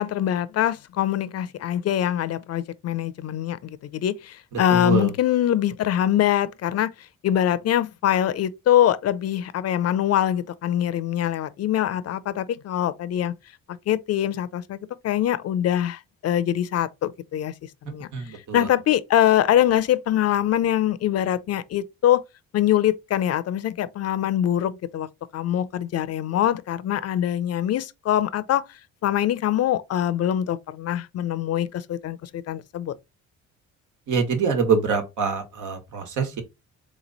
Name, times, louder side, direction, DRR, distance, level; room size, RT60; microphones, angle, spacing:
voice 1, 0.0-6.9 7.2-13.3 13.9-17.5 17.8-18.1 18.5-22.2 22.5-28.6 29.0-32.9, left 11 dB, 55° left, 0.5 m, -23 dB
voice 2, 4.7-5.1 18.1-18.7 34.1-36.4, right 5 dB, 80° right, 1.4 m, -24 dB
3.7 x 3.0 x 4.0 m
cardioid pair, 90°, 30 cm